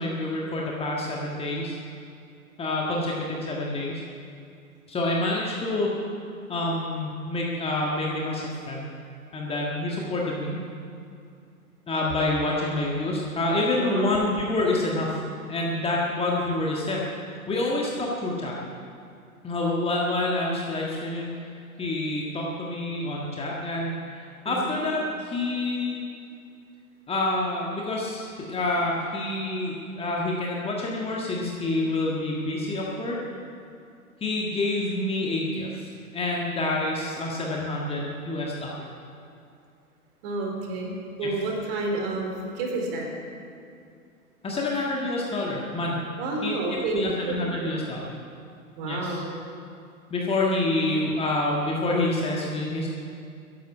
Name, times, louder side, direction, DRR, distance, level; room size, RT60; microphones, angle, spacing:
voice 1, 0.0-1.8 2.6-4.0 4.9-5.9 6.5-8.9 9.3-10.6 11.9-15.2 15.5-17.0 17.5-18.6 19.4-21.3 21.8-26.0 27.1-33.2 34.2-38.9 41.2-41.3 44.4-46.0 46.4-48.0 48.8-49.2 50.1-52.9, left 2 dB, 15° left, -3 dB, 1.7 m, -27 dB
voice 2, 13.8-14.2 24.4-24.7 40.2-40.9 41.2-43.1 46.2-47.8 48.8-49.3, right 2 dB, 40° right, 1 dB, 3.9 m, -30 dB
14.5 x 11.0 x 8.9 m, 2.4 s
figure-of-eight pair, 115°, 43 cm